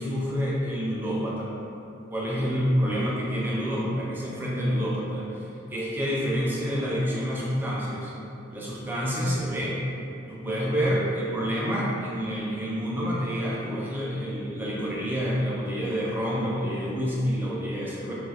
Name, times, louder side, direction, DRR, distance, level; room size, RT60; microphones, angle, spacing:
voice 1, 0.0-1.5 2.1-5.4 5.7-8.1 8.5-9.7 10.3-18.1, equal, 10° right, -6 dB, 0.5 m, -28 dB
2.5 x 2.4 x 4.1 m, 2.8 s
head